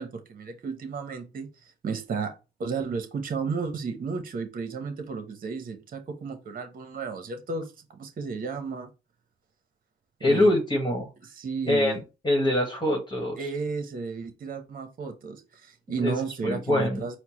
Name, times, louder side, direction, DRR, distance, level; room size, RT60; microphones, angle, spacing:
voice 1, 0.0-2.3 2.6-8.9 10.2-10.6 11.4-12.0 13.4-17.2, right 4 dB, 45° right, 7 dB, 1.0 m, -33 dB
voice 2, 10.2-11.1 11.7-12.0 12.2-13.4 16.0-16.1 16.4-17.0, left 1 dB, 25° left, 0 dB, 1.5 m, -24 dB
4.4 x 2.2 x 4.3 m, 0.29 s
supercardioid pair, 60°, 19 cm